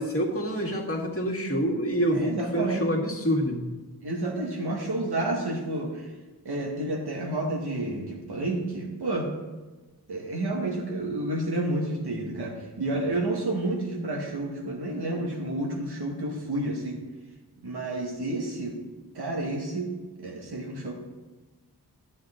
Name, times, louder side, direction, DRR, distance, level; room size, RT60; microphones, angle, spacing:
voice 1, 0.0-3.6, equal, 35° left, -2 dB, 1.9 m, -27 dB
voice 2, 2.1-2.9 4.0-6.1 6.4-9.3 10.1-17.0 17.6-18.8 19.1-19.9 20.2-20.9, right 2 dB, 80° right, 0 dB, 2.0 m, -30 dB
12.0 x 7.6 x 3.8 m, 1.2 s
wide cardioid pair, 75°, 38 cm